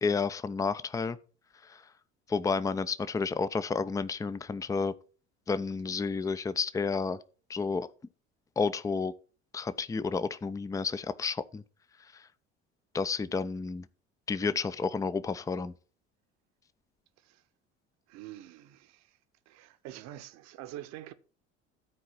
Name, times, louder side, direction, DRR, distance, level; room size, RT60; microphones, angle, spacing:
voice 1, 0.0-1.2 1.6-1.8 2.3-4.9 5.5-7.2 7.5-7.9 8.6-9.1 9.5-11.6 12.1-12.2 12.9-13.9 14.3-15.7, left 4 dB, 10° left, 0.5 m, -31 dB
voice 2, 18.1-19.2 19.5-21.1, right 13 dB, 50° right, 1.0 m, -46 dB
13.0 x 4.7 x 5.9 m
figure-of-eight pair, 60°, 34 cm